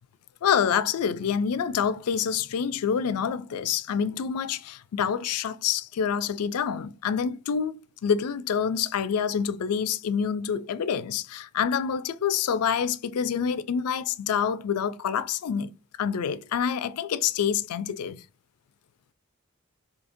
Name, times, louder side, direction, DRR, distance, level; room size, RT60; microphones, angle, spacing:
voice 1, 0.4-7.8 8.0-15.7 16.0-18.2, left 7 dB, 85° left, 0.4 m, -27 dB
5.0 x 2.8 x 2.6 m
head